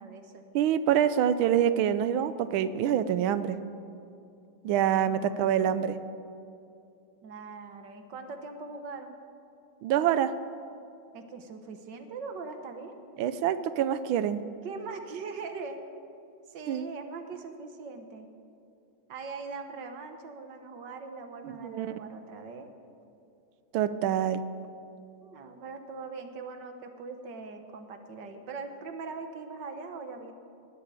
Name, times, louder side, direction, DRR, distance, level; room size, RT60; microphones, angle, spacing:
voice 1, 0.0-0.4 5.1-5.5 7.2-9.2 11.1-13.0 14.6-15.8 16.5-18.3 19.1-22.7 25.2-30.3, right 4 dB, 60° right, 6 dB, 1.7 m, -41 dB
voice 2, 0.5-3.6 4.6-6.0 9.8-10.3 13.2-14.4 16.7-16.9 21.4-22.0 23.7-24.4, right 10 dB, 80° right, 13 dB, 1.5 m, -26 dB
19.5 x 7.7 x 9.1 m, 2.6 s
omnidirectional pair, 2.2 m